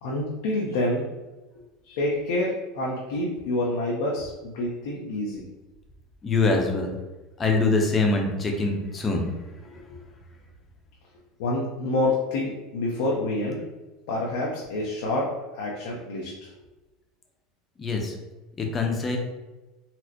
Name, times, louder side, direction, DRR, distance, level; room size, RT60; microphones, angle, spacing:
voice 1, 0.0-1.0 1.8-5.4 11.4-13.6 14.1-16.5, left 2 dB, 75° left, -3 dB, 0.6 m, -27 dB
voice 2, 6.2-6.9 7.4-9.9 17.8-18.1 18.6-19.2, left 3 dB, 25° left, 1 dB, 0.7 m, -24 dB
4.1 x 2.1 x 2.9 m, 1.1 s
supercardioid pair, 105°, 0 cm